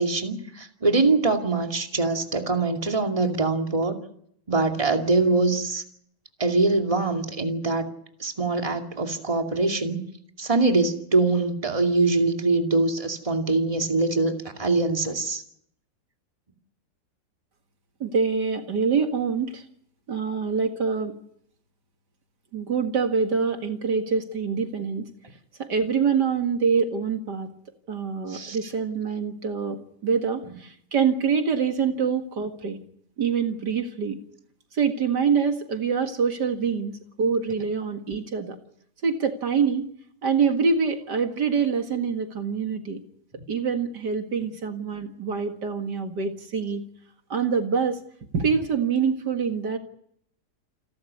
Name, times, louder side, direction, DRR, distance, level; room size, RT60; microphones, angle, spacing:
voice 1, 0.0-3.9 4.5-5.8 6.4-7.9 8.2-10.0 10.4-15.4 28.3-28.6, right 3 dB, 20° right, 4 dB, 2.5 m, -23 dB
voice 2, 18.0-19.6 20.1-21.2 22.5-25.1 25.6-27.5 27.9-32.8 33.2-34.2 34.7-38.6 39.0-39.9 40.2-43.0 43.5-46.8 47.3-48.0 48.3-49.8, right 6 dB, 70° right, 6 dB, 2.5 m, -25 dB
29.0 x 12.5 x 9.7 m, 0.70 s
omnidirectional pair, 1.9 m